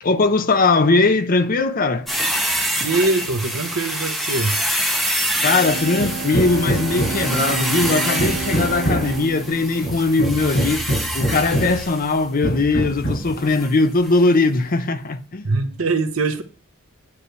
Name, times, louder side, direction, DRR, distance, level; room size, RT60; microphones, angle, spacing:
voice 1, 0.0-2.1 5.4-10.9 11.1-15.5, left 3 dB, 45° left, 0.7 m, -19 dB
sound 1, 2.1-12.2 13.5-13.7 14.0-14.1, equal, ahead, 1.1 m, -26 dB
voice 2, 2.8-4.5 15.4-16.4, right 3 dB, 85° right, 1.1 m, -22 dB
Bowed string instrument, 5.3-11.3, right 5 dB, 50° right, 0.4 m, -32 dB
Hammer, 6.0-7.4 7.8-9.2 9.8-11.9 12.4-13.4, equal, 90° left, 5.2 m, -24 dB
9.7 x 3.3 x 6.8 m
head